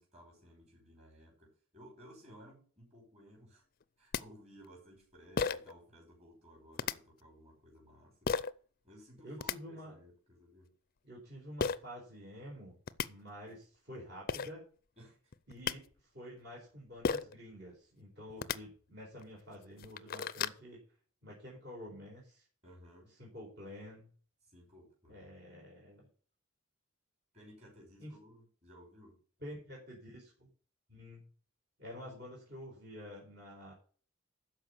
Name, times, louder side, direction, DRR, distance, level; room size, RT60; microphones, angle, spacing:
voice 1, 0.0-3.6 4.0-8.3 8.8-10.7 15.0-15.2 22.6-23.1 24.5-25.3 27.3-29.2, equal, 30° right, -1 dB, 6.0 m, -58 dB
sound 1, 3.8-3.9 4.1-4.2 5.4-5.7 6.8-6.9 8.3-8.5 9.2-9.6 11.6-11.8 12.6-12.7 12.9-13.1 14.0-14.1 14.3-14.5 15.3-15.7 17.0-17.4 18.3-18.6 19.2-19.3 19.7-20.6, left 5 dB, 45° left, 0.5 m, -33 dB
voice 2, 9.2-10.0 11.0-12.8 13.1-14.7 15.5-15.8 16.1-20.8 21.2-22.4 23.2-24.1 25.1-26.1 28.0-28.2 29.4-30.5 30.9-31.2 31.8-33.7, equal, 50° right, -4 dB, 4.5 m, -49 dB
13.0 x 5.0 x 7.0 m, 0.42 s
head